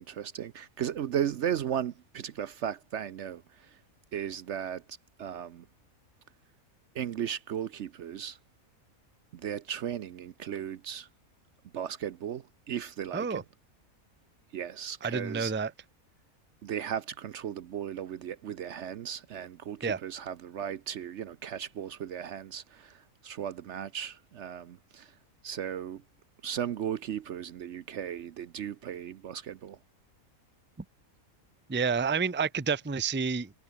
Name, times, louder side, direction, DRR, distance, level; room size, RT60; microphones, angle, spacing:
voice 1, 0.0-3.8 4.1-4.8 5.2-5.6 6.9-8.4 9.3-11.1 11.7-13.4 14.5-15.7 16.6-25.1 25.4-26.0 26.4-29.8, right 9 dB, 60° right, 0.9 m, -36 dB
voice 2, 15.0-15.7 19.8-20.0 31.7-33.5, right 5 dB, 10° right, 0.6 m, -29 dB
omnidirectional pair, 1.5 m